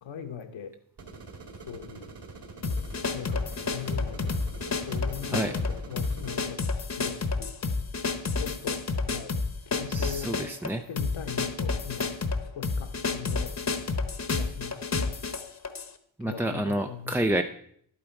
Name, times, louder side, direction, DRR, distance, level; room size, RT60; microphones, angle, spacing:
voice 1, 0.0-0.7 1.7-2.1 3.1-4.4 4.9-6.6 6.9-7.5 8.4-8.8 9.1-9.3 9.7-10.3 10.9-12.1 12.6-13.6 14.4-14.8 16.2-17.1, left 8 dB, 65° left, 7 dB, 1.1 m, -39 dB
sound 1, 1.0-6.4, right 3 dB, 50° right, 2.1 m, -45 dB
sound 2, 2.6-15.9, left 4 dB, 35° left, 1.0 m, -30 dB
voice 2, 9.9-10.8 16.2-17.4, right 1 dB, 5° right, 5 dB, 0.4 m, -28 dB
10.5 x 8.8 x 4.5 m, 0.66 s
cardioid pair, 90°, 49 cm